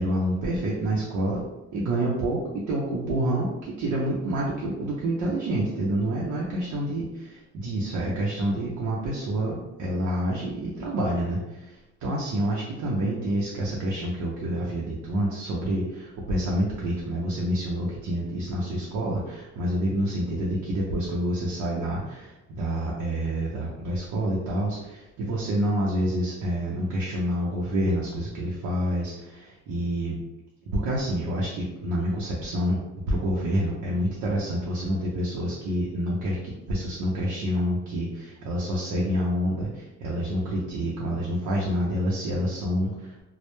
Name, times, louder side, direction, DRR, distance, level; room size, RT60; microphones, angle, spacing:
voice 1, 0.0-1.4 1.7-30.2 30.7-32.8 33.1-43.2, right 1 dB, 70° right, -4 dB, 0.6 m, -28 dB
2.1 x 2.0 x 2.9 m, 0.98 s
cardioid pair, 90°, 30 cm